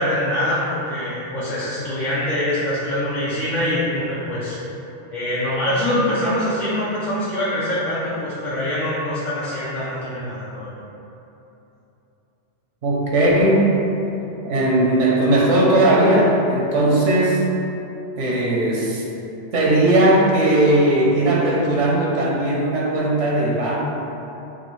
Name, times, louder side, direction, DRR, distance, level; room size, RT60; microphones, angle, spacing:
voice 1, 0.0-4.6 5.1-10.7, left 1 dB, 50° left, -9 dB, 0.7 m, -24 dB
voice 2, 12.8-13.7 14.4-17.4 18.2-19.0 19.5-23.8, right 1 dB, 85° right, -3 dB, 1.1 m, -18 dB
5.8 x 2.5 x 3.1 m, 3.0 s
omnidirectional pair, 1.2 m